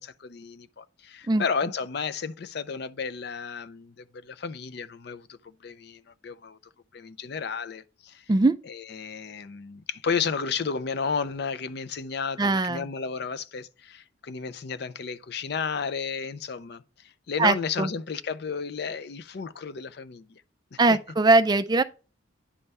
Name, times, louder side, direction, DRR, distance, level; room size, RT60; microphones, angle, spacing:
voice 1, 0.0-6.6 6.9-8.3 8.7-20.4 20.7-21.0, left 5 dB, 55° left, 0.4 m, -33 dB
voice 2, 12.4-12.9 17.4-17.9 20.8-21.8, right 2 dB, 20° right, 0.3 m, -21 dB
9.8 x 3.4 x 5.3 m
head